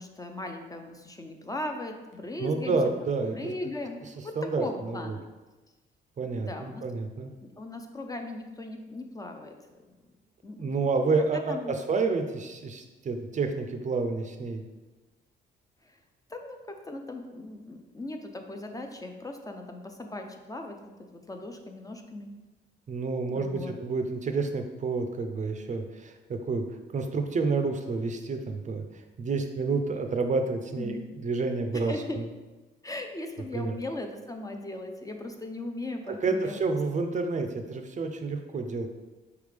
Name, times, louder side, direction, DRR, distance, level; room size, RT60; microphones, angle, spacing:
voice 1, 0.0-2.8 3.3-5.2 6.2-6.8 7.4-9.6 10.4-10.7 11.5-11.7 15.8-16.0 16.3-20.8 21.1-22.3 23.3-23.7 30.8-31.0 31.7-32.2 32.8-36.6, left 2 dB, 20° left, 4 dB, 0.4 m, -38 dB
voice 2, 2.4-3.3 4.4-5.2 6.2-7.3 10.6-14.6 22.9-26.6 26.9-28.8 29.2-32.3 33.5-33.7 36.2-38.9, right 4 dB, 40° right, 6 dB, 0.5 m, -29 dB
4.6 x 3.5 x 3.3 m, 1.2 s
cardioid pair, 90°, 20 cm